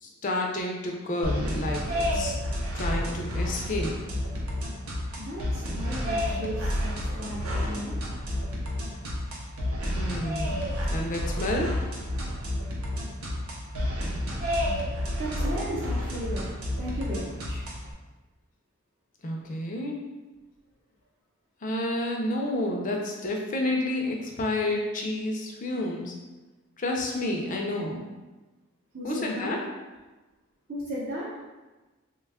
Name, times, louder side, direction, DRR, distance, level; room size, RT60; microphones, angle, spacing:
voice 1, 0.0-2.4 2.7-3.9 9.9-11.7 19.2-20.0 21.6-26.1 26.8-28.1 29.0-29.6, left 1 dB, 40° left, 0 dB, 0.5 m, -30 dB
sound 1, 1.2-17.9, left 1 dB, 80° right, 0.7 m, -30 dB
voice 2, 5.2-7.9 15.2-17.6 28.9-29.5 30.7-31.3, equal, 45° right, -9 dB, 0.7 m, -35 dB
3.2 x 2.3 x 3.4 m, 1.2 s
head